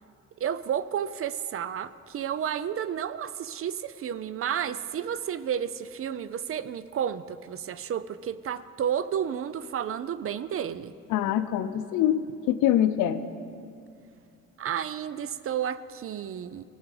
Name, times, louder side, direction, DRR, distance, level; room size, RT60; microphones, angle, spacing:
voice 1, 0.4-10.9 14.6-16.6, right 9 dB, 45° right, 15 dB, 0.5 m, -31 dB
voice 2, 11.1-13.2, left 11 dB, 90° left, 11 dB, 0.5 m, -24 dB
18.0 x 6.4 x 4.9 m, 2.4 s
cardioid pair, 90°, 30 cm